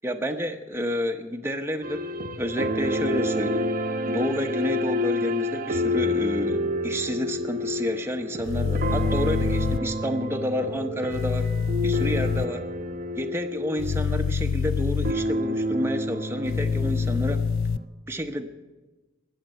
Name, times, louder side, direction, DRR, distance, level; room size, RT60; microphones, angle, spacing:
voice 1, 0.0-2.1 2.4-3.6 4.1-11.5 11.8-12.6 13.2-17.4 18.1-18.5, equal, 10° right, 4 dB, 0.8 m, -30 dB
sound 1, 1.8-14.8 15.0-17.9, left 1 dB, 40° right, 0.8 m, -29 dB
sound 2, 8.4-9.8 11.1-12.5 13.8-15.1 16.5-17.8, left 6 dB, 70° left, 0.4 m, -26 dB
19.5 x 7.4 x 7.9 m, 1.2 s
head